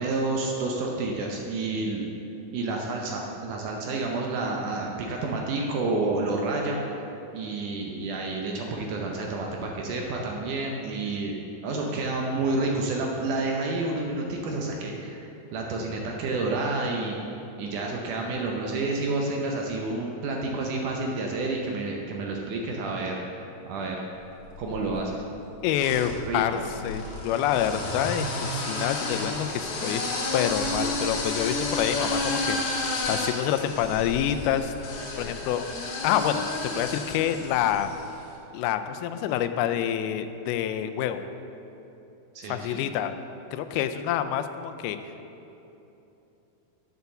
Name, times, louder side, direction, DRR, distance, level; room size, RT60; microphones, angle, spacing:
voice 1, 0.0-2.0 2.5-6.8 7.3-11.3 11.6-15.2 15.5-17.2 17.6-23.1 23.7-24.0 24.6-25.2 26.3-26.4 42.4-42.8, right 3 dB, 75° right, 0 dB, 2.0 m, -29 dB
sound 1, 24.4-25.1 25.8-38.1, left 2 dB, 70° left, 3.0 m, -31 dB
voice 2, 25.6-30.1 30.3-32.8 33.1-34.7 35.2-35.6 36.0-37.9 38.5-41.3 42.5-43.1 43.5-45.0, left 10 dB, 90° left, 9 dB, 2.5 m, -27 dB
7.9 x 6.9 x 6.8 m, 2.9 s
omnidirectional pair, 4.3 m